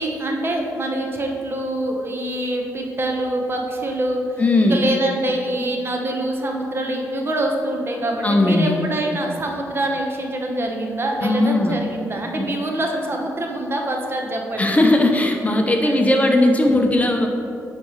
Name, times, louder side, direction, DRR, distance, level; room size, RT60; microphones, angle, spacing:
voice 1, 0.0-14.8 15.8-16.1, right 1 dB, 35° right, 1 dB, 1.1 m, -25 dB
voice 2, 4.4-4.8 8.2-8.7 11.2-11.8 12.4-12.5 14.6-17.3, left 2 dB, 20° left, 2 dB, 0.7 m, -18 dB
9.2 x 3.3 x 4.6 m, 2.5 s
cardioid pair, 65°, 7 cm